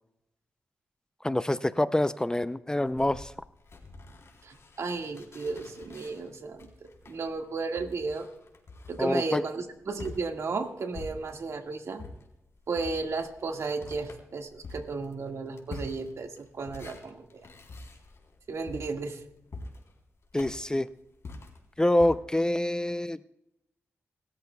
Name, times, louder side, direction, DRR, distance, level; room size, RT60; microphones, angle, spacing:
voice 1, 1.2-3.3 9.0-9.4 20.3-20.9 21.8-23.2, left 1 dB, 15° left, 13 dB, 0.5 m, -26 dB
sound 1, 2.9-11.6 12.0-22.1, left 3 dB, 60° left, 3.6 m, -46 dB
voice 2, 4.4-8.3 8.9-12.1 12.7-17.5 18.5-19.2, right 4 dB, 70° right, 4 dB, 1.8 m, -34 dB
27.5 x 13.5 x 2.3 m, 0.85 s
cardioid pair, 75°, 5 cm